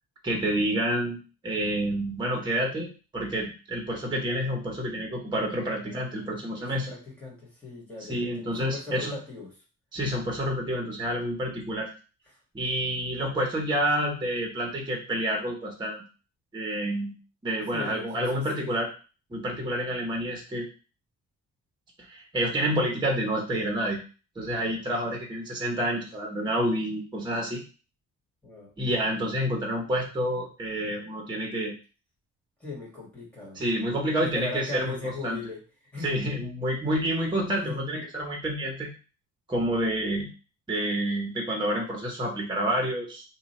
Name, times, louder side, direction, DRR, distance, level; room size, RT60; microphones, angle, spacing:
voice 1, 0.2-6.9 8.1-9.1 9.9-11.9 12.5-16.0 16.5-17.2 17.4-18.9 19.3-20.6 22.1-24.0 24.4-27.6 28.8-31.7 33.6-35.4 36.0-38.9 39.5-40.3 40.7-43.2, equal, 15° right, -1 dB, 0.8 m, -28 dB
voice 2, 5.7-9.5 10.6-10.8 17.7-18.8 28.4-28.7 32.6-33.6 34.2-35.6 35.9-36.1 37.6-37.9, left 3 dB, 5° left, -5 dB, 1.4 m, -39 dB
2.8 x 2.3 x 4.0 m, 0.35 s
cardioid pair, 135°, 31 cm